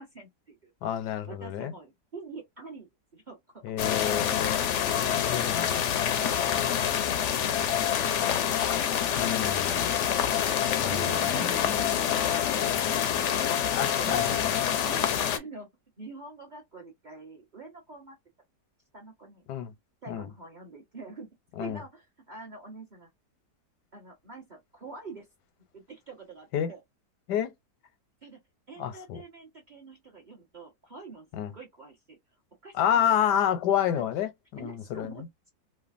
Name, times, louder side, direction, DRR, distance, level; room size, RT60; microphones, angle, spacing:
voice 1, 0.0-0.7 1.3-3.6 5.1-5.6 6.1-8.8 9.7-9.8 10.4-13.5 14.0-14.4 14.9-15.1 15.3-15.7 16.0-18.2 18.9-19.4 20.0-21.3 21.6-23.1 23.9-25.3 25.7-26.8 28.2-28.4 28.7-31.3 31.5-32.2 32.6-33.4 33.9-34.1 34.6-35.5, right 3 dB, 40° right, 0.7 m, -46 dB
voice 2, 0.8-1.7 3.6-4.6 5.3-5.8 9.2-9.9 10.8-12.0 13.8-14.7 19.5-19.7 20.1-20.3 21.6-21.8 26.5-26.7 27.3-27.5 28.8-29.2 31.3-31.5 32.7-35.3, left 9 dB, 90° left, 1.3 m, -29 dB
sound 1, 3.8-15.4, left 9 dB, 70° left, 0.7 m, -26 dB
3.1 x 2.2 x 2.4 m
omnidirectional pair, 1.7 m